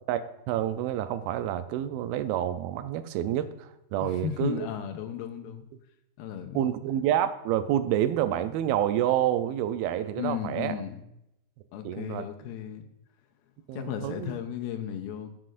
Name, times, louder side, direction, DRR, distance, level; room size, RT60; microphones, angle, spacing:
voice 1, 0.1-4.7 6.5-10.8 11.8-12.3 13.7-14.3, right 11 dB, 85° right, 11 dB, 2.3 m, -28 dB
voice 2, 4.0-5.6 6.2-6.7 10.2-11.0 11.7-12.9 13.7-15.3, left 10 dB, 85° left, 6 dB, 2.5 m, -35 dB
13.5 x 7.6 x 2.5 m, 0.83 s
omnidirectional pair, 4.4 m